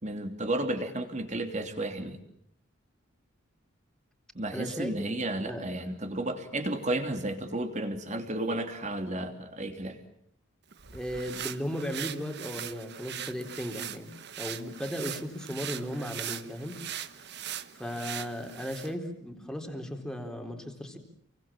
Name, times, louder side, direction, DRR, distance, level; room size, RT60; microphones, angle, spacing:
voice 1, 0.0-2.2 4.3-10.0, right 1 dB, 35° right, 6 dB, 3.1 m, -32 dB
voice 2, 4.5-5.1 5.5-5.7 10.9-16.9 17.8-21.0, equal, 5° left, 4 dB, 3.8 m, -36 dB
sound 1, 10.7-18.9, right 10 dB, 55° right, 1.3 m, -40 dB
29.0 x 24.0 x 7.5 m, 0.70 s
head